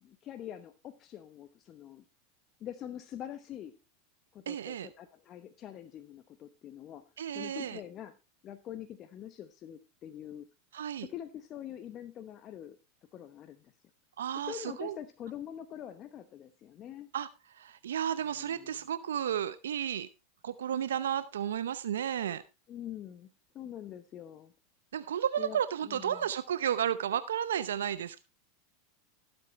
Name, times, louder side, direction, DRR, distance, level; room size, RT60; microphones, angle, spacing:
voice 1, 0.0-2.0 2.6-3.7 4.3-7.0 7.3-8.1 8.4-10.5 11.0-12.8 13.1-13.7 14.3-17.1 18.2-18.7 22.7-23.3 23.5-24.5 25.4-26.2, left 10 dB, 40° left, 9 dB, 0.9 m, -44 dB
voice 2, 4.5-4.9 7.2-7.8 10.7-11.1 14.2-15.0 17.1-17.3 17.5-20.1 20.4-22.4 24.9-28.2, right 9 dB, 80° right, 14 dB, 0.7 m, -33 dB
17.5 x 8.0 x 3.1 m, 0.26 s
hypercardioid pair, 95°, 0 cm